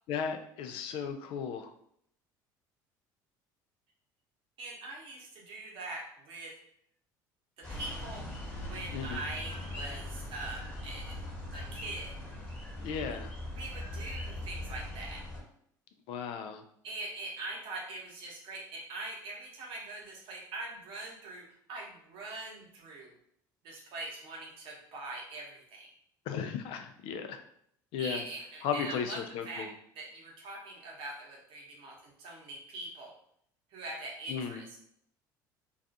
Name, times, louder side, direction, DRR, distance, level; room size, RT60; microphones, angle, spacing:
voice 1, 0.1-1.7 8.9-9.2 12.8-13.3 16.1-16.6 26.3-27.4 27.9-28.2 28.6-29.7 34.3-34.6, left 7 dB, 65° left, 6 dB, 0.3 m, -35 dB
voice 2, 4.6-6.6 7.6-8.3 8.6-11.2 11.5-12.1 13.5-15.3 16.8-23.1 23.6-25.9 28.0-29.2 29.4-29.7 29.9-33.1 33.7-34.8, right 2 dB, 60° right, -2 dB, 0.9 m, -42 dB
sound 1, 7.6-15.4, left 1 dB, 15° left, 1.1 m, -40 dB
2.4 x 2.3 x 2.6 m, 0.69 s
hypercardioid pair, 75°, 10 cm